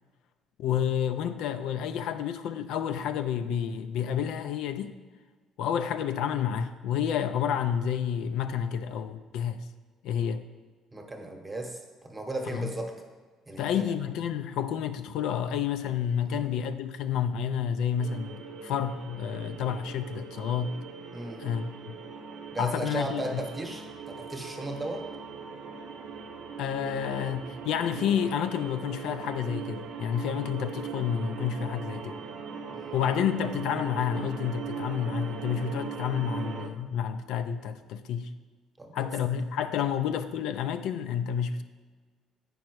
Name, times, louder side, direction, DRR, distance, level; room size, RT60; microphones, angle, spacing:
voice 1, 0.6-4.9 5.6-9.6 10.0-10.4 12.5-12.7 13.6-20.8 21.4-21.9 22.6-23.4 26.6-32.2 32.9-38.3 38.9-41.6, left 8 dB, 70° left, 0.4 m, -30 dB
voice 2, 10.9-12.9 13.5-13.9 16.2-16.7 19.4-19.6 21.1-21.4 22.5-25.0 32.7-33.2 38.8-39.0, right 2 dB, 10° right, 1.0 m, -36 dB
sound 1, 18.0-36.7, right 5 dB, 55° right, 0.6 m, -40 dB
8.6 x 5.3 x 4.6 m
cardioid pair, 150°, 0 cm